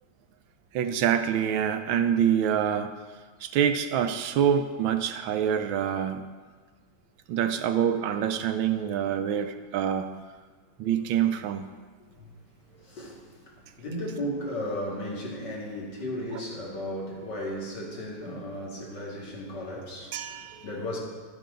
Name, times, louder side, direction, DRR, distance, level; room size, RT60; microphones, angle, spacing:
voice 1, 0.7-2.9 3.4-6.2 7.3-10.1 10.8-11.7 20.1-20.7, right 9 dB, 80° right, 1.4 m, -26 dB
voice 2, 12.0-12.4 12.8-21.0, left 1 dB, 60° left, 2.7 m, -35 dB
11.5 x 10.5 x 3.9 m
omnidirectional pair, 2.2 m